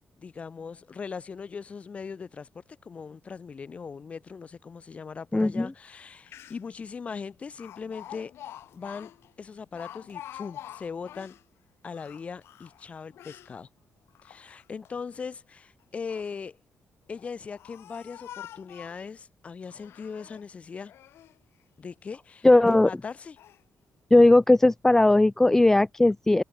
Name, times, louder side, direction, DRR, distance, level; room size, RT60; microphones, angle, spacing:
voice 1, 0.2-8.3 8.7-9.1 9.4-11.3 11.8-13.7 14.2-16.6 17.1-20.9 21.8-23.4, left 5 dB, 30° left, 4.6 m, -39 dB
voice 2, 5.3-5.7 22.4-22.9 24.1-26.4, left 2 dB, 10° left, 0.4 m, -18 dB
Speech, 6.0-6.1 6.3-6.8 7.6-11.4 11.9-13.5 14.1-14.9 15.8-16.4 17.1-19.1 19.7-20.5 20.9-21.4 21.9-22.0 22.6-22.9 23.4-23.6, left 12 dB, 85° left, 2.2 m, -46 dB
wide cardioid pair, 165°, 4 cm